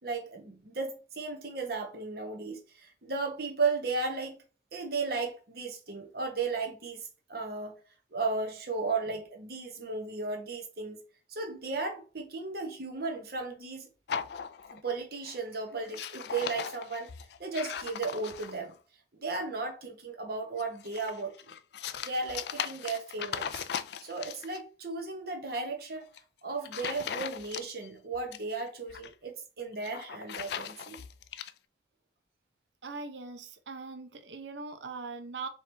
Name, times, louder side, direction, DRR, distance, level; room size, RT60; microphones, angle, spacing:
voice 1, 0.0-4.3 4.7-7.0 7.3-7.7 8.1-11.0 11.3-13.9 14.7-17.1 17.4-18.7 19.2-21.3 22.0-23.6 24.0-26.1 26.4-31.0, right 4 dB, 55° right, 1.0 m, -35 dB
sound 1, 14.1-15.0 15.3-15.5 15.8-18.7 20.6-24.6 26.0-26.2 26.6-27.9 28.1-29.1 29.7-31.5, left 8 dB, 65° left, 0.3 m, -38 dB
voice 2, 32.8-35.5, right 4 dB, 80° right, 0.8 m, -41 dB
4.7 x 3.0 x 3.4 m
head